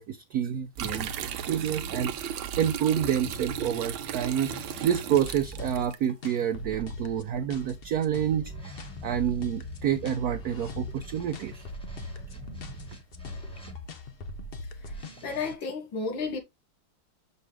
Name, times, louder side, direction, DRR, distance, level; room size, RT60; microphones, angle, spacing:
voice 1, 0.0-8.8 9.0-11.7, right 9 dB, 65° right, 1.0 m, -28 dB
sound 1, 0.8-5.8 6.8-14.1 14.9-15.5, equal, 5° left, 1.5 m, -44 dB
sound 2, 0.8-6.0, right 9 dB, 85° right, 1.5 m, -35 dB
sound 3, 5.1-15.2, left 2 dB, 45° left, 0.8 m, -41 dB
voice 2, 15.2-16.4, left 4 dB, 80° left, 2.1 m, -32 dB
6.6 x 5.4 x 3.4 m
omnidirectional pair, 2.1 m